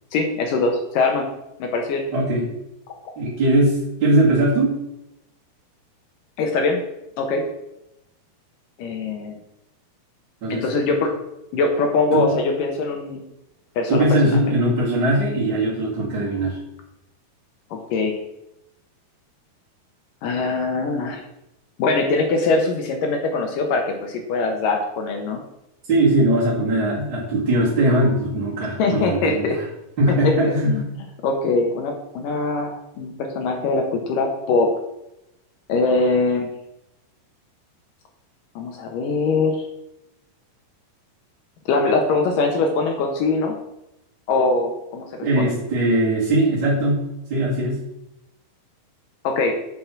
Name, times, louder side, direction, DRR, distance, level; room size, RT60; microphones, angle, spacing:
voice 1, 0.1-1.3 1.6-2.0 6.4-6.8 7.2-7.4 8.8-9.4 10.5-11.1 11.5-13.2 13.8-14.1 17.7-18.2 20.2-21.2 21.8-25.4 28.8-29.6 30.2-30.9 31.2-34.7 35.7-36.5 38.6-39.6 41.7-43.5 44.3-45.1 45.4-45.6 49.2-49.6, left 3 dB, 70° left, 3 dB, 2.2 m, -22 dB
voice 2, 2.1-2.4 3.2-4.7 10.4-10.9 12.1-12.4 13.9-16.6 25.9-29.7 30.0-30.8 45.2-47.0 47.3-47.8, right 1 dB, 35° right, -8 dB, 2.2 m, -20 dB
8.4 x 6.0 x 6.0 m, 0.88 s
omnidirectional pair, 5.0 m